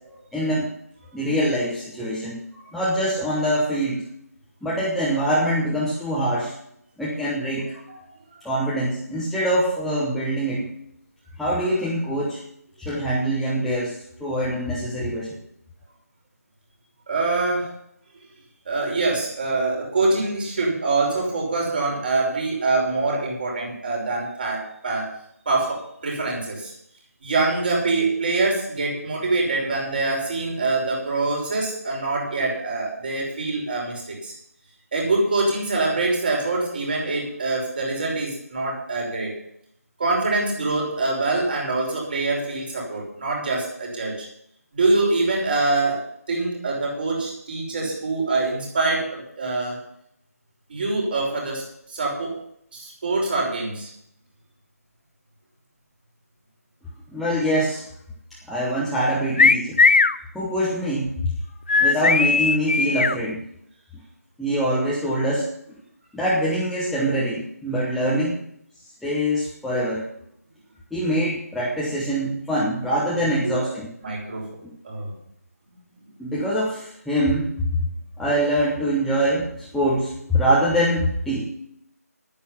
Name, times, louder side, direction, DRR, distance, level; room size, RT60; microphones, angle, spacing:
voice 1, 0.3-0.7 1.1-2.4 2.7-4.1 4.6-6.5 7.0-7.7 8.4-10.7 11.4-12.4 12.8-15.4 57.1-57.9 58.5-59.8 60.3-61.3 61.8-63.4 64.4-65.5 66.1-68.4 69.0-70.1 70.9-73.9 76.2-77.6 78.2-81.4, equal, ahead, -8 dB, 0.9 m, -24 dB
voice 2, 17.1-17.7 18.7-25.1 25.5-26.7 27.2-34.3 34.9-39.3 40.0-44.3 44.7-49.8 50.7-51.6 51.9-52.4 52.7-53.9 73.2-73.7 74.0-74.5 74.8-75.1 76.2-76.3, right 3 dB, 35° right, -2 dB, 5.6 m, -24 dB
sound 1, 59.4-60.2 61.7-63.2, left 4 dB, 40° left, 0.5 m, -17 dB
11.5 x 10.5 x 5.8 m, 0.72 s
figure-of-eight pair, 160°, 9 cm